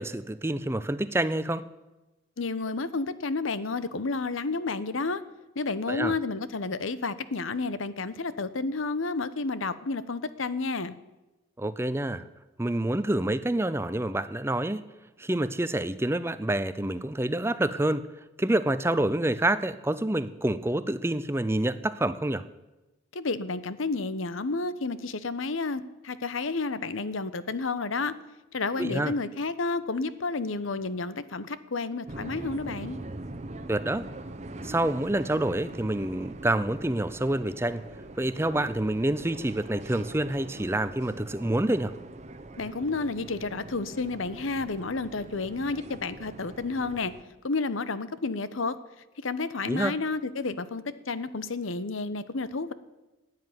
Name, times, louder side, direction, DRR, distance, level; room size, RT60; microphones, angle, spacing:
voice 1, 0.0-1.6 5.9-6.1 11.6-12.2 12.6-14.8 15.2-18.1 18.4-22.5 28.8-29.1 33.7-34.0 34.6-37.8 38.2-41.9 49.7-50.0, right 1 dB, 15° right, 14 dB, 0.5 m, -27 dB
voice 2, 2.4-5.2 5.5-11.0 23.1-28.1 28.5-33.0 42.6-47.1 47.4-48.8 49.2-52.7, left 3 dB, 90° left, 14 dB, 0.9 m, -31 dB
sound 1, 32.1-47.2, right 2 dB, 35° right, 0.9 m, -42 dB
15.5 x 9.5 x 9.6 m, 1.1 s
head